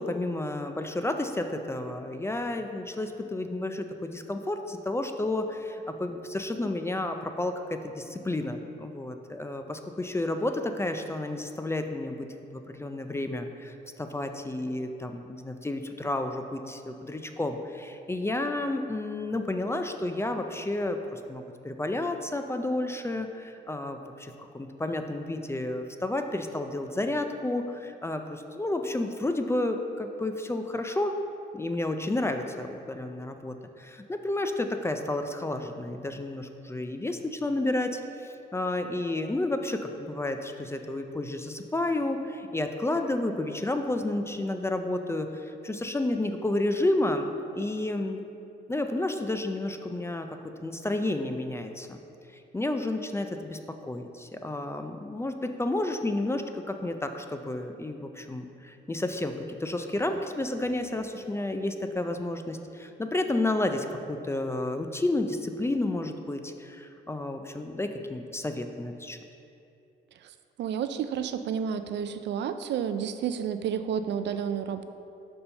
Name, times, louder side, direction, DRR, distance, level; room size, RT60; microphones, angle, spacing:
voice 1, 0.0-12.3 12.7-31.2 31.5-48.2 48.7-52.0 52.5-69.2, left 2 dB, 15° left, 6 dB, 0.4 m, -31 dB
voice 2, 70.6-74.9, right 8 dB, 60° right, 10 dB, 0.4 m, -30 dB
5.4 x 4.2 x 5.6 m, 2.7 s
cardioid pair, 90°, 20 cm